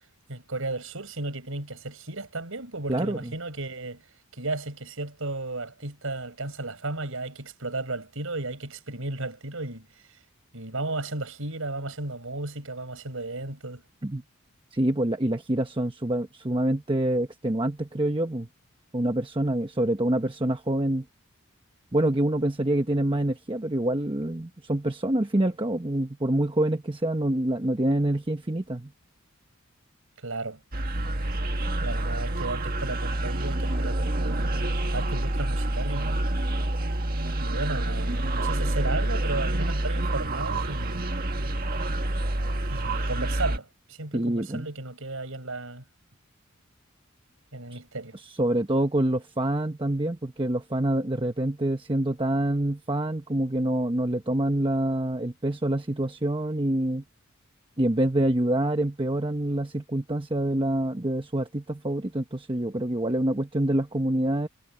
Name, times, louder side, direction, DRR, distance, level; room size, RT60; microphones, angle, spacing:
voice 1, 0.3-4.0 4.3-9.9 10.5-13.8 30.2-30.6 31.8-36.2 37.4-41.0 42.7-45.8 47.5-48.2, right 2 dB, 75° right, 5.8 m, -34 dB
voice 2, 14.7-18.5 18.9-21.0 21.9-28.9 44.1-44.7 47.7-47.8 48.4-57.0 57.8-64.5, right 1 dB, 25° right, 1.0 m, -26 dB
sound 1, 30.7-43.6, right 1 dB, 45° right, 1.6 m, -27 dB
head